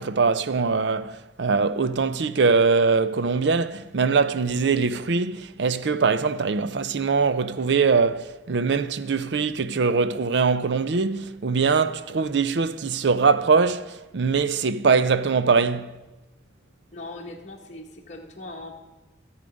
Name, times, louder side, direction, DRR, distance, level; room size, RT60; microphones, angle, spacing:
voice 1, 0.0-15.9, right 5 dB, 65° right, 0.5 m, -22 dB
voice 2, 16.9-18.8, left 2 dB, 35° left, 1.2 m, -40 dB
14.0 x 8.1 x 5.2 m
head